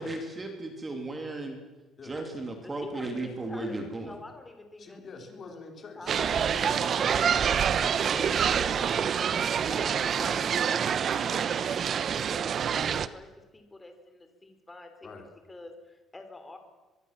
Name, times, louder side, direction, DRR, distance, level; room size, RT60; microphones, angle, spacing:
voice 1, 0.0-1.6 2.0-4.1, right 2 dB, 15° right, 5 dB, 2.7 m, -35 dB
voice 2, 2.6-3.8 4.1-5.0 5.3-5.6 6.0-6.5 8.0-9.2 9.7-15.1 15.5-16.6, left 2 dB, 10° left, 6 dB, 3.3 m, -47 dB
voice 3, 4.8-9.0 9.8-10.5 15.0-15.3, left 4 dB, 30° left, 4 dB, 3.8 m, -45 dB
sound 1, 6.1-13.1, right 7 dB, 35° right, 0.9 m, -26 dB
23.0 x 22.5 x 7.4 m, 1.1 s
cardioid pair, 170°, 0 cm